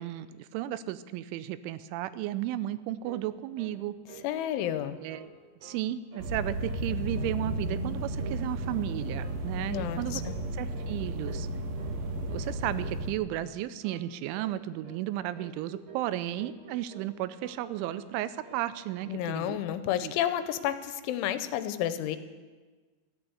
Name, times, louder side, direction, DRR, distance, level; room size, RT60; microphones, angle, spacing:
voice 1, 0.0-4.0 5.0-5.3 5.6-10.2 10.6-11.5 12.3-19.6 20.0-20.1, right 13 dB, 85° right, 14 dB, 3.1 m, -34 dB
sound 1, 3.0-3.3 3.6-3.8 4.1-5.3 5.6-5.8 6.1-6.4 6.6-6.9 7.1-7.9 8.2-8.9 9.2-9.4 9.7-9.9 10.2-10.4 10.7-11.0 11.2-11.5 11.8-12.0 12.3-12.5 12.8-13.0 13.3-13.5 13.8-14.1 14.3-14.6 14.8-15.0 15.3-16.1 16.4-17.1 17.4-18.1 18.4-19.2, right 6 dB, 50° right, 2.2 m, -49 dB
voice 2, 4.2-5.0 9.7-10.3 19.1-22.2, left 11 dB, 85° left, 11 dB, 3.1 m, -31 dB
sound 2, 6.2-13.1, right 1 dB, 70° right, 3.5 m, -34 dB
14.0 x 11.5 x 7.9 m, 1.4 s
omnidirectional pair, 5.4 m